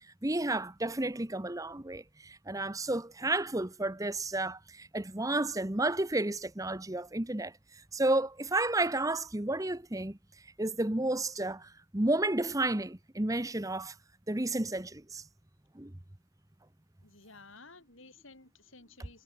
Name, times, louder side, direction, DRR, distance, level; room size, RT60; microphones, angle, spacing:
voice 1, 0.0-10.2 10.6-13.9 14.3-15.2 15.7-15.9, right 2 dB, 15° right, 0.9 m, -32 dB
voice 2, 17.0-19.2, left 3 dB, 65° left, 7.3 m, -54 dB
head